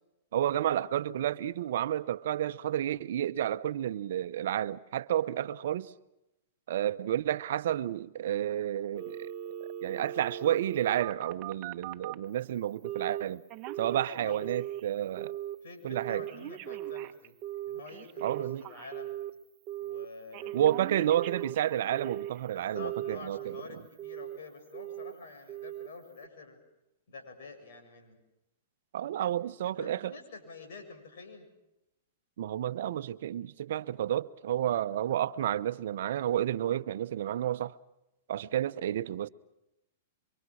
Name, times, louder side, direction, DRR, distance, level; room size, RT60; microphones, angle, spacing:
voice 1, 0.3-5.9 6.7-9.3 9.8-13.4 13.8-15.3 15.8-16.2 18.2-18.6 20.5-23.8 28.9-30.1 32.4-37.7 38.3-39.3, right 11 dB, 65° right, 0.8 m, -31 dB
Telephone, 9.0-12.2 12.8-13.2 13.5-14.9 15.2-15.6 15.9-19.3 19.7-20.1 20.3-22.4 22.8-23.6 24.0-24.4 24.7-25.1 25.5-25.9 26.2-26.3, right 12 dB, 40° right, 1.1 m, -39 dB
voice 2, 15.6-17.3 17.7-19.2 19.8-21.4 22.4-26.6 27.1-28.2 29.2-29.3 29.8-31.5, left 4 dB, 70° left, 7.2 m, -48 dB
26.5 x 24.5 x 6.4 m
hypercardioid pair, 120°, 0 cm